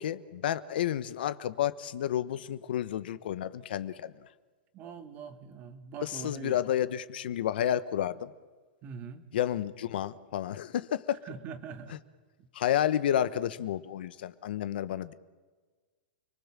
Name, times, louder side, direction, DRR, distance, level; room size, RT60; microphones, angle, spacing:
voice 1, 0.0-4.1 6.0-8.3 9.3-11.2 12.5-15.1, left 11 dB, 75° left, 15 dB, 1.2 m, -30 dB
voice 2, 4.7-6.6 8.8-9.3 11.2-12.0 12.4-12.5, right 6 dB, 30° right, 8 dB, 2.3 m, -43 dB
29.5 x 20.0 x 7.6 m, 1.4 s
supercardioid pair, 150°, 5 cm